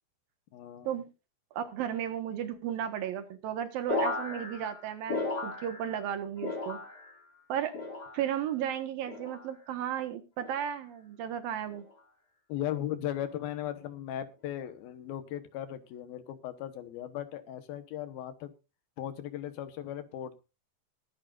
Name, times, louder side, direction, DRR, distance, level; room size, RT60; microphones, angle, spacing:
voice 1, 0.5-1.0 12.5-18.5 19.0-20.4, left 11 dB, 85° left, 10 dB, 3.1 m, -37 dB
voice 2, 1.5-6.8 7.5-7.7 8.1-11.8, right 9 dB, 75° right, 8 dB, 3.2 m, -34 dB
sound 1, 3.9-6.1 6.4-7.2 7.7-8.4 9.1-9.5 10.4-10.8 11.7-12.0, left 2 dB, 30° left, 2.8 m, -36 dB
21.5 x 10.5 x 2.6 m, 0.30 s
omnidirectional pair, 4.2 m